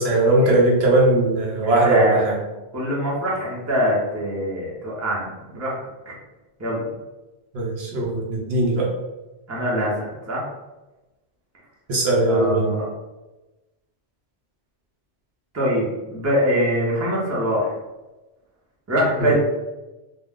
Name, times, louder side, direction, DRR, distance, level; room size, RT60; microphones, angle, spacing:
voice 1, 0.0-2.4 7.5-8.9 11.9-12.7 19.2-19.3, right 2 dB, 65° right, -3 dB, 0.8 m, -19 dB
voice 2, 1.6-2.2 2.7-5.7 6.1-6.2 6.6-6.8 9.5-10.4 12.3-12.9 15.5-17.8 18.9-19.3, equal, 15° right, -5 dB, 0.6 m, -23 dB
2.3 x 2.2 x 3.5 m, 1.1 s
omnidirectional pair, 1.2 m